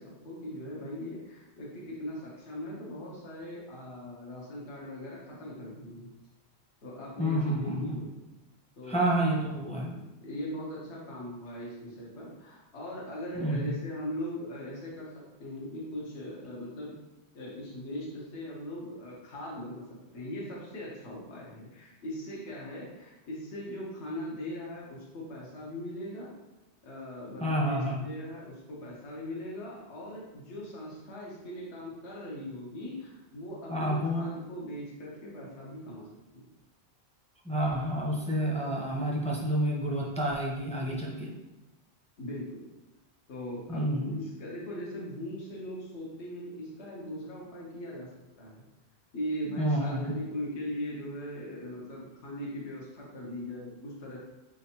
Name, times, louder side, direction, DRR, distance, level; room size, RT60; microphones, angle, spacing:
voice 1, 0.0-6.1 6.8-8.2 8.8-16.9 17.3-26.3 26.8-36.1 36.3-36.5 42.2-42.6 43.3-48.1 48.4-48.6 49.1-54.2, equal, 85° left, -4 dB, 1.2 m, -40 dB
voice 2, 7.2-8.0 8.9-9.9 13.3-13.7 27.4-28.0 33.7-34.2 37.4-41.3 43.7-44.2 49.6-50.1, right 1 dB, 10° left, -3 dB, 0.5 m, -29 dB
4.2 x 3.6 x 2.8 m, 1.0 s
omnidirectional pair, 1.1 m